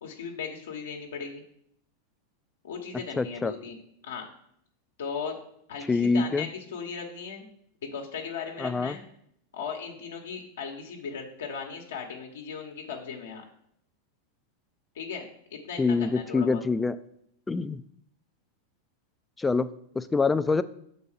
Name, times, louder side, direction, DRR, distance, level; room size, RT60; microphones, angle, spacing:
voice 1, 0.0-1.4 2.6-3.8 4.0-4.3 5.0-5.4 5.7-7.5 7.8-9.0 9.5-13.4 14.9-15.2 15.5-16.6, left 6 dB, 85° left, 1 dB, 1.1 m, -37 dB
voice 2, 3.2-3.5 5.9-6.5 8.6-9.0 15.8-17.0 17.5-17.8 19.4-19.7 20.0-20.6, left 4 dB, 10° left, 13 dB, 0.4 m, -25 dB
6.3 x 4.1 x 5.6 m, 0.70 s
hypercardioid pair, 120°, 0 cm